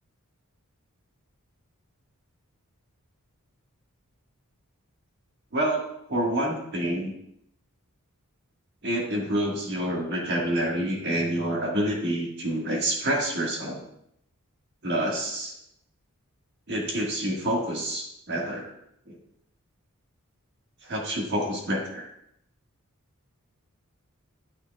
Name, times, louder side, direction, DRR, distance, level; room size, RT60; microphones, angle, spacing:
voice 1, 5.5-5.8 6.1-7.1 8.8-13.9 14.8-15.5 16.7-18.7 19.1-19.2 20.8-22.0, right 1 dB, 50° right, -1 dB, 1.5 m, -27 dB
9.5 x 5.8 x 2.3 m, 0.75 s
head